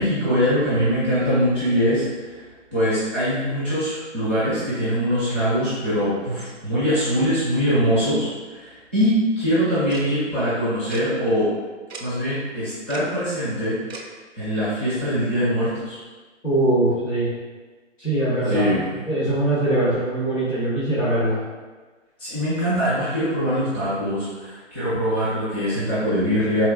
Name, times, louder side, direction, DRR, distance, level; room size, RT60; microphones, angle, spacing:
voice 1, 0.0-2.4 2.7-11.5 12.0-14.0 14.4-16.0 18.5-18.8 22.2-26.6, equal, 10° left, -14 dB, 0.5 m, -22 dB
Tick-tock, 9.9-10.0 10.9-11.0 11.9-12.0 12.9-13.1 13.9-14.0, right 4 dB, 60° right, 0.5 m, -36 dB
voice 2, 16.4-17.3 18.0-18.7 19.1-21.4, right 1 dB, 85° left, -11 dB, 1.3 m, -21 dB
4.1 x 2.4 x 2.2 m, 1.3 s
figure-of-eight pair, 140°, 36 cm